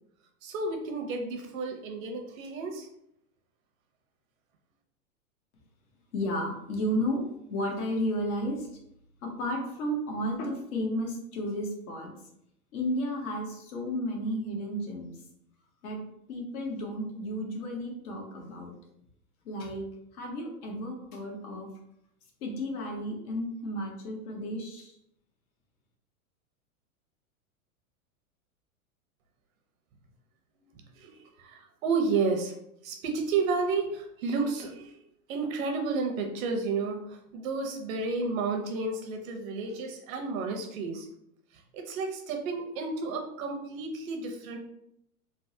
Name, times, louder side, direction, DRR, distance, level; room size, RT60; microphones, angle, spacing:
voice 1, 0.4-2.9 30.7-32.5 32.8-35.0 35.3-41.1 41.7-44.6, right 4 dB, 65° right, 3 dB, 0.8 m, -31 dB
voice 2, 6.1-7.2 7.5-8.7 9.2-12.1 12.7-15.1 15.8-16.0 16.3-18.8 19.4-19.8 20.1-21.7 22.4-24.9, equal, 75° left, 0 dB, 1.0 m, -33 dB
3.4 x 2.0 x 2.7 m, 0.77 s
hypercardioid pair, 110°, 44 cm